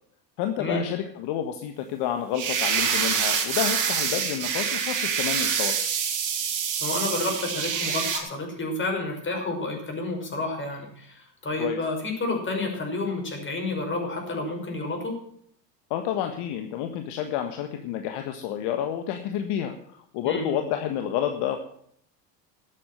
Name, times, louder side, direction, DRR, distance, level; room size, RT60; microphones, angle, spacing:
voice 1, 0.4-5.7 11.6-11.8 15.9-19.7 20.1-21.6, left 10 dB, 55° left, 6 dB, 1.6 m, -29 dB
sound 1, 2.3-8.2, right 7 dB, 40° right, 3.7 m, -26 dB
voice 2, 6.8-15.2 20.2-20.5, left 2 dB, 25° left, 2 dB, 5.7 m, -30 dB
13.0 x 8.5 x 7.8 m, 0.65 s
hypercardioid pair, 90°, 49 cm